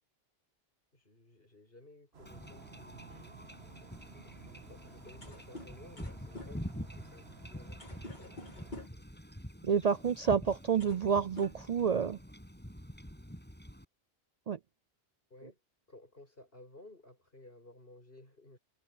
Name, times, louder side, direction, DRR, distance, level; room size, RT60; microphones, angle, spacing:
voice 1, 0.9-3.5 4.2-9.2 15.3-15.6 15.9-18.6, left 2 dB, 60° left, 7.3 m, -57 dB
sound 1, 2.1-8.9, right 5 dB, 80° right, 1.8 m, -55 dB
Wind / Ocean / Boat Water vehicle, 2.3-13.9, equal, 10° left, 8.1 m, -47 dB
sound 2, 5.2-9.1 10.1-10.3 10.6-11.1 11.3-12.2, left 2 dB, 45° left, 3.2 m, -49 dB
voice 2, 9.6-12.2 14.5-14.6, right 6 dB, 50° right, 0.5 m, -29 dB
omnidirectional pair, 1.1 m